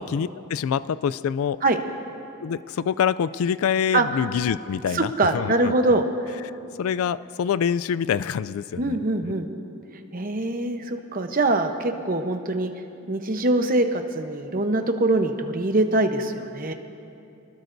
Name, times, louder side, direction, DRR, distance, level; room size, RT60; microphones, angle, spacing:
voice 1, 0.0-1.6 2.4-6.0 6.8-9.0 9.2-9.4, left 7 dB, 75° left, 16 dB, 0.3 m, -26 dB
voice 2, 4.9-6.1 8.8-9.5 10.1-12.7 13.1-16.7, right 2 dB, 40° right, 6 dB, 0.9 m, -23 dB
25.0 x 20.0 x 2.6 m, 2.7 s
head